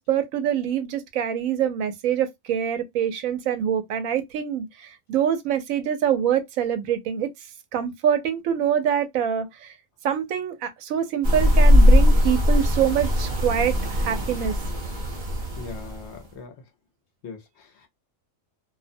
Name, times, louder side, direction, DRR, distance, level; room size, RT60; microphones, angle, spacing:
voice 1, 0.0-7.3 7.7-9.7 10.0-14.6, right 9 dB, 80° right, 1.0 m, -25 dB
sound 1, 11.2-16.2, left 1 dB, 45° right, 0.7 m, -19 dB
voice 2, 15.6-16.5 17.2-17.9, left 5 dB, 65° left, 0.8 m, -40 dB
2.5 x 2.0 x 2.5 m
omnidirectional pair, 1.4 m